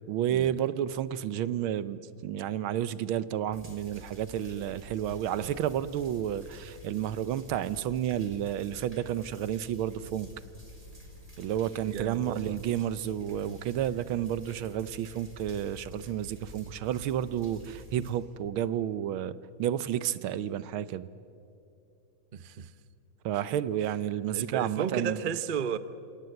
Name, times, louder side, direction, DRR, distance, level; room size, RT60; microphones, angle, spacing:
voice 1, 0.1-10.3 11.4-21.1 23.2-25.2, right 10 dB, 85° right, 1.6 m, -31 dB
sound 1, 3.5-18.1, left 1 dB, 15° right, 4.5 m, -49 dB
voice 2, 11.9-12.6 22.3-22.7 24.3-25.8, right 7 dB, 65° right, 0.5 m, -34 dB
28.0 x 26.5 x 7.9 m
omnidirectional pair, 2.2 m